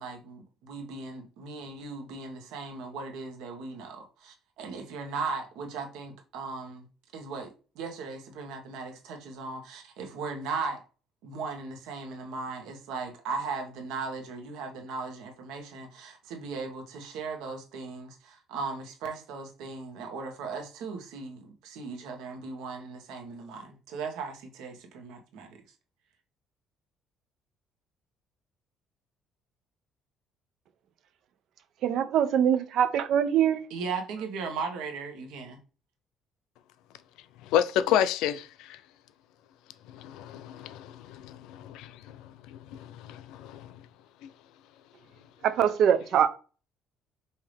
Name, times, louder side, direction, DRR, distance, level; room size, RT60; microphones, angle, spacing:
voice 1, 0.0-6.9 7.1-10.8 11.2-25.5 33.7-35.6, right 4 dB, 85° right, 1.3 m, -37 dB
voice 2, 31.8-33.6 45.4-46.3, right 9 dB, 65° right, 0.6 m, -23 dB
voice 3, 37.4-38.8 39.9-43.8 44.2-44.3, left 10 dB, 85° left, 0.4 m, -31 dB
5.6 x 2.8 x 3.3 m
cardioid pair, 125°, 0 cm